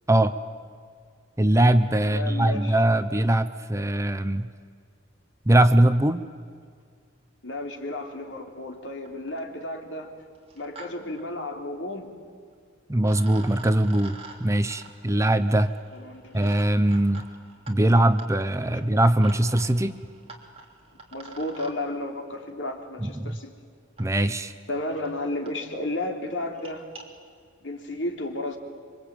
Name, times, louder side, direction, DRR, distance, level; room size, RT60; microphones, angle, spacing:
voice 1, 1.4-4.5 5.5-6.3 12.9-15.7 16.3-17.2 17.7-19.9 23.0-23.4 24.0-24.5, right 1 dB, 15° right, 11 dB, 0.7 m, -21 dB
voice 2, 2.0-2.8 7.4-10.1 10.5-12.1 15.6-16.5 18.7-18.8 21.1-23.5 24.7-26.9 27.6-28.6, left 1 dB, 70° left, 3 dB, 3.4 m, -33 dB
sound 1, 8.7-8.8 9.1-9.5 10.3-10.9 11.1-11.2 12.5-12.6 13.0-21.7 23.1-23.2 24.0-24.1 24.7-24.8 25.0-25.1 25.5-25.6 25.8-26.0 26.4-27.0, right 3 dB, 30° right, 3.3 m, -47 dB
26.5 x 24.5 x 9.0 m, 2.1 s
head